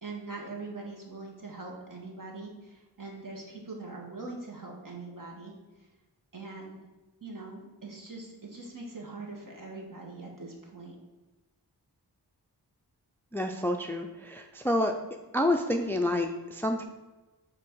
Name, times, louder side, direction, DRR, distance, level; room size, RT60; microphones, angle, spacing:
voice 1, 0.0-5.5 5.8-5.9 6.3-6.8 7.2-10.9, right 3 dB, 50° right, -1 dB, 1.5 m, -42 dB
voice 2, 13.3-14.9 15.3-16.8, left 1 dB, 5° left, 5 dB, 0.4 m, -28 dB
6.0 x 4.0 x 4.6 m, 1.2 s
wide cardioid pair, 65°, 41 cm